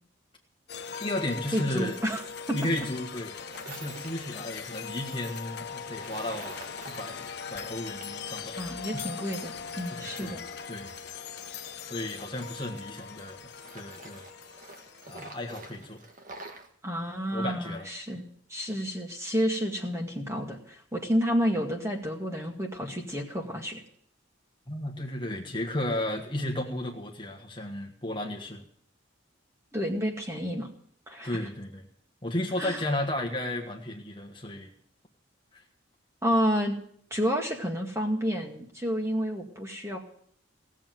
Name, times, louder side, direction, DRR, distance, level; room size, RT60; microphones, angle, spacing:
sound 1, 0.7-15.8, left 6 dB, 55° left, 1.0 m, -40 dB
voice 1, 1.0-2.0 2.5-3.4 3.7-6.6 7.0-8.8 9.9-10.4 10.7-10.9 11.8-13.4 13.7-14.3 15.1-16.0 17.3-17.9 24.7-28.6 31.2-31.9 32.2-34.7 35.5-35.6, left 1 dB, 25° left, 2 dB, 1.5 m, -34 dB
voice 2, 1.5-2.2 2.5-2.6 8.6-10.4 16.8-18.2 18.5-23.8 29.7-30.7 31.1-31.4 32.6-32.8 36.2-36.8 37.1-40.0, equal, 15° right, 1 dB, 2.1 m, -30 dB
Tools, 3.5-4.2 5.0-8.3 8.6-10.9 11.5-13.2 13.5-16.7, right 2 dB, 40° right, 1.6 m, -48 dB
17.5 x 7.5 x 9.3 m, 0.63 s
head